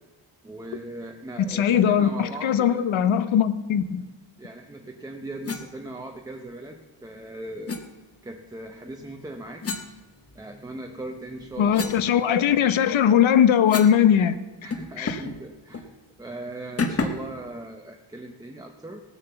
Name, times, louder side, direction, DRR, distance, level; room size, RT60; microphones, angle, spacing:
voice 1, 0.4-2.9 4.4-7.8 8.2-9.7 10.3-11.9 14.6-15.9 16.2-19.0, right 1 dB, 10° right, 3 dB, 0.6 m, -39 dB
voice 2, 1.5-4.0 11.6-14.4 15.0-15.2, left 9 dB, 65° left, 13 dB, 0.9 m, -20 dB
sound 1, 5.4-5.7 7.7-7.8 9.6-10.7 11.1-14.0 14.3-14.4 14.7-15.4 15.7-15.9 16.8-17.3, left 4 dB, 30° left, 1.0 m, -32 dB
17.5 x 7.4 x 6.9 m, 1.3 s
wide cardioid pair, 180°, 50 cm